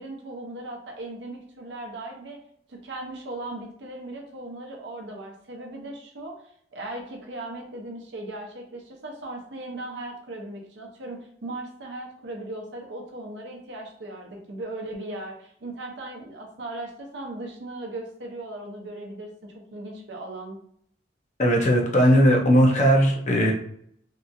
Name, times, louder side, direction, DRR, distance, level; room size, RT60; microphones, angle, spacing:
voice 1, 0.0-2.4 2.7-6.4 6.7-20.6, right 2 dB, 75° right, 1 dB, 0.6 m, -38 dB
voice 2, 21.4-23.5, equal, 45° left, 0 dB, 0.5 m, -18 dB
2.8 x 2.4 x 2.5 m, 0.66 s
head